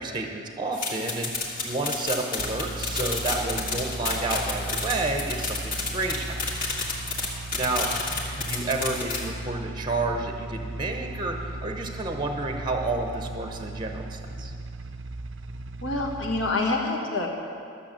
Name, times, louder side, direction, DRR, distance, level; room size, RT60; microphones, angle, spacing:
voice 1, 0.0-1.3 1.6-6.4 6.7-6.8 7.5-7.9 8.4-14.5, right 2 dB, 20° right, 4 dB, 0.8 m, -30 dB
sound 1, 0.7-9.2, left 3 dB, 45° left, 1.8 m, -31 dB
sound 2, 2.4-16.5, right 2 dB, 60° right, 0.6 m, -37 dB
voice 2, 15.8-17.3, left 2 dB, 65° left, 0 dB, 1.7 m, -26 dB
13.0 x 7.0 x 7.4 m, 2.4 s
head